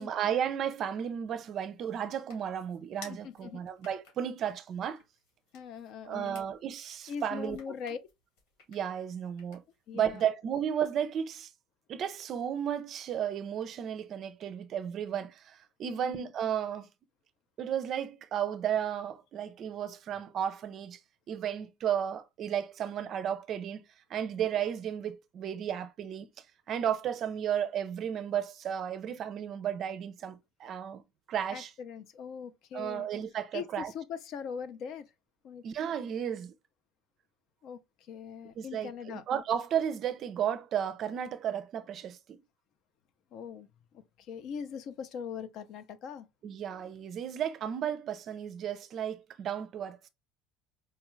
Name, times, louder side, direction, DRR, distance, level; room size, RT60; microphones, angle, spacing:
voice 1, 0.0-5.0 6.0-7.6 8.7-9.6 9.9-11.5 11.9-16.9 17.6-21.0 21.3-23.8 24.1-26.3 26.7-31.0 31.3-31.7 32.7-33.9 35.6-36.5 38.6-42.4 46.4-50.1, right 9 dB, 40° right, 0.5 m, -33 dB
sound 1, 1.3-10.0, left 5 dB, 85° left, 2.3 m, -57 dB
voice 2, 3.0-3.6 5.5-6.4 7.1-8.0 9.9-10.2 15.8-16.3 31.5-33.1 33.5-35.1 35.4-35.6 37.6-37.8 38.1-39.2 43.3-43.7 44.2-46.3, left 7 dB, 50° left, 0.6 m, -41 dB
4.4 x 2.4 x 3.0 m
cardioid pair, 155°, 0 cm